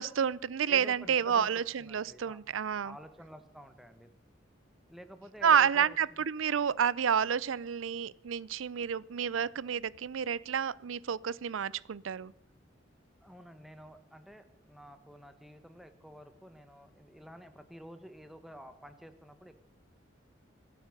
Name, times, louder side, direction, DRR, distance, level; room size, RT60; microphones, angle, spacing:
voice 1, 0.0-3.0 5.4-12.3, right 7 dB, 90° right, 22 dB, 0.5 m, -29 dB
voice 2, 0.7-2.4 2.8-4.1 4.9-6.0 13.2-19.5, equal, ahead, 9 dB, 1.3 m, -50 dB
25.0 x 8.6 x 6.6 m, 0.78 s
head